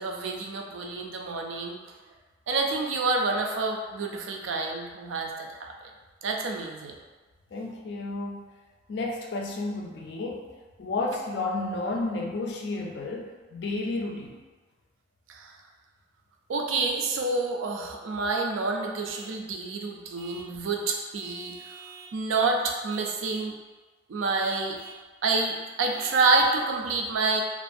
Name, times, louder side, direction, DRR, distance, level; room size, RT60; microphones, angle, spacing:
voice 1, 0.0-1.8 2.5-5.7 6.2-6.9 15.3-15.6 16.5-21.5 22.1-23.5 24.1-24.8 25.2-27.4, right 3 dB, 85° right, 2 dB, 0.4 m, -28 dB
voice 2, 7.5-8.5 8.9-10.5 10.8-14.4, left 2 dB, 60° left, 1 dB, 0.3 m, -32 dB
Vehicle horn car horn honking / Truck, 19.2-19.4 20.2-20.6 21.2-22.2 22.9-23.6 24.4-25.0 25.9-26.6, right 3 dB, 5° left, 0.6 m, -46 dB
2.5 x 2.2 x 2.5 m, 1.3 s
head